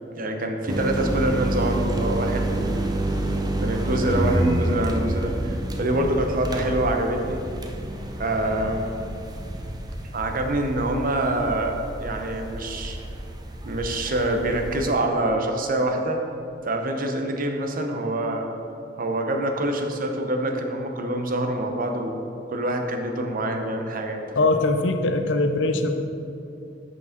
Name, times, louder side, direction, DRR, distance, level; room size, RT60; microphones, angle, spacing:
voice 1, 0.1-2.8 3.6-7.4 8.2-9.0 10.1-13.0 13.6-16.2 16.6-18.5 19.0-22.2 22.5-24.4, right 1 dB, 50° right, 4 dB, 0.8 m, -26 dB
sound 1, 0.7-14.9, right 1 dB, 20° right, 0.6 m, -28 dB
voice 2, 24.4-25.9, left 2 dB, 80° left, 7 dB, 0.7 m, -21 dB
6.7 x 6.1 x 5.8 m, 2.7 s
head